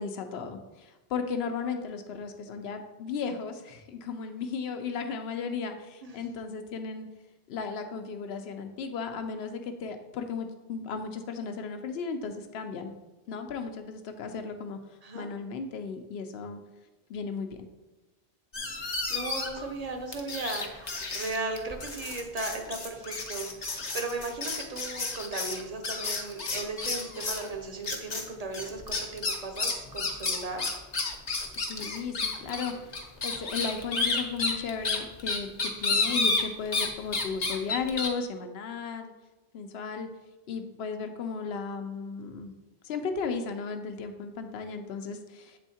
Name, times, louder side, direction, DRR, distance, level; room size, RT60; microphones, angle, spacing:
voice 1, 0.0-7.1 7.5-12.9 13.3-16.6 17.1-17.7 31.6-39.1 39.5-40.1 40.5-42.5 42.8-45.6, left 5 dB, 75° left, 7 dB, 0.9 m, -35 dB
sound 1, 18.5-19.7 20.1-27.5 27.8-28.2 28.5-36.9 37.1-38.1, left 3 dB, 45° left, 0.8 m, -31 dB
voice 2, 18.8-30.7, right 3 dB, 40° right, 4 dB, 0.7 m, -37 dB
7.6 x 3.5 x 4.2 m, 1.1 s
omnidirectional pair, 1.1 m